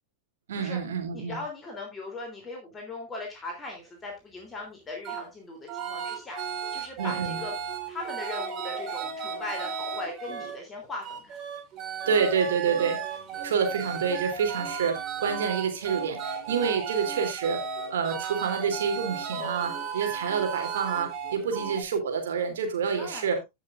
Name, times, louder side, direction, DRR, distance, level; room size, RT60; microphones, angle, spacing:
voice 1, 0.5-1.4 7.0-7.4 12.1-13.0 13.4-17.6 17.9-23.4, right 6 dB, 60° right, 4 dB, 3.2 m, -28 dB
voice 2, 1.1-7.5 7.9-11.4 23.0-23.4, left 2 dB, 20° left, 0 dB, 3.3 m, -39 dB
sound 1, 5.0-5.2 5.7-10.6 11.0-21.8, right 7 dB, 30° right, 2.6 m, -35 dB
16.0 x 6.5 x 2.5 m, 0.22 s
figure-of-eight pair, 90°, 0 cm